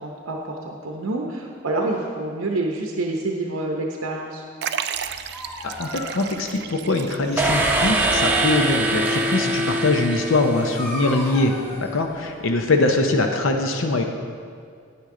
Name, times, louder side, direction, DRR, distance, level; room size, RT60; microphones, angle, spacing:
voice 1, 0.0-4.4, right 2 dB, 85° right, 0 dB, 0.8 m, -27 dB
Liquid, 4.6-9.7 10.0-10.1 11.0-11.1, right 8 dB, 50° right, 0.3 m, -34 dB
Dog, 4.9-12.8, equal, 10° left, 1.5 m, -37 dB
voice 2, 5.8-14.0, left 2 dB, 70° left, 4 dB, 0.7 m, -22 dB
sound 1, 7.4-11.2, right 1 dB, 10° right, 0.7 m, -23 dB
9.9 x 9.6 x 3.8 m, 2.2 s
head